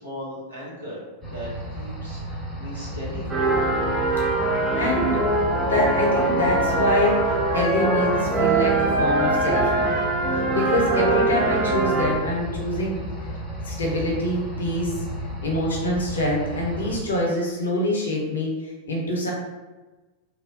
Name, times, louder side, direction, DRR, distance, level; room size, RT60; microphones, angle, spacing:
voice 1, 0.0-1.5 1.7-3.3, equal, 75° right, -6 dB, 1.1 m, -37 dB
sound 1, 1.2-17.0, equal, 10° left, 0.9 m, -33 dB
sound 2, 3.3-12.1, right 2 dB, 15° right, 0.5 m, -22 dB
Wind instrument woodwind instrument, 3.9-7.7, left 10 dB, 45° left, 0.4 m, -36 dB
voice 2, 4.7-5.2 5.6-7.3 7.5-10.0 10.3-13.0 13.6-15.0 15.4-19.3, left 1 dB, 70° left, -3 dB, 0.8 m, -25 dB
3.0 x 2.2 x 2.6 m, 1.2 s
figure-of-eight pair, 90°, 0 cm